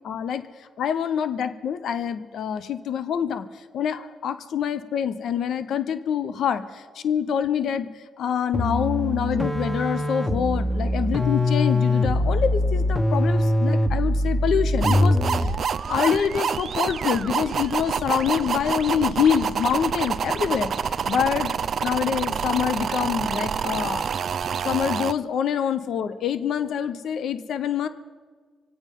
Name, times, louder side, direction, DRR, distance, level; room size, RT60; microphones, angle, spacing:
voice 1, 0.0-3.5 3.7-15.5 15.9-21.5 21.8-24.1 24.6-27.9, left 8 dB, 75° left, 11 dB, 0.8 m, -26 dB
sound 1, 8.5-15.7, left 1 dB, 5° left, 1.5 m, -22 dB
sound 2, 14.8-25.1, right 7 dB, 60° right, 0.5 m, -27 dB
25.5 x 8.8 x 5.4 m, 1.5 s
supercardioid pair, 60°, 0 cm